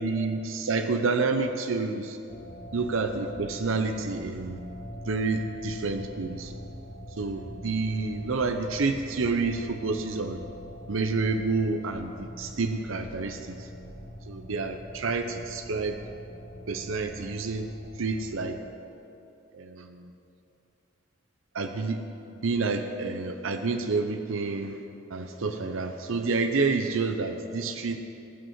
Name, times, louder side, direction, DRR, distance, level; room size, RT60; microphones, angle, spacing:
voice 1, 0.0-2.2 2.7-4.6 5.1-6.5 7.1-10.4 10.9-13.7 14.3-16.0 16.7-18.6 19.5-20.1 21.5-24.8 25.1-28.0, right 3 dB, 85° right, 6 dB, 0.7 m, -29 dB
sound 1, 2.3-18.5, equal, 40° left, 3.2 m, -43 dB
18.5 x 6.3 x 7.9 m, 2.8 s
head